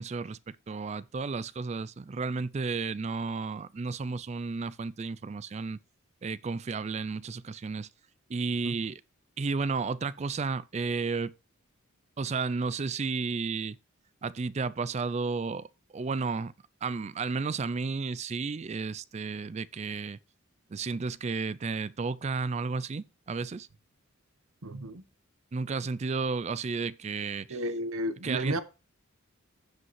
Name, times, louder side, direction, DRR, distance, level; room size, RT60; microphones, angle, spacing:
voice 1, 0.0-5.8 6.2-7.9 8.3-9.0 9.4-11.3 12.2-13.8 14.2-15.7 15.9-16.5 16.8-20.2 20.7-23.7 25.5-27.6 28.2-28.6, right 4 dB, 30° right, 0.3 m, -32 dB
voice 2, 24.6-25.0 27.5-28.6, equal, 75° right, 1.0 m, -33 dB
15.5 x 5.2 x 3.1 m
head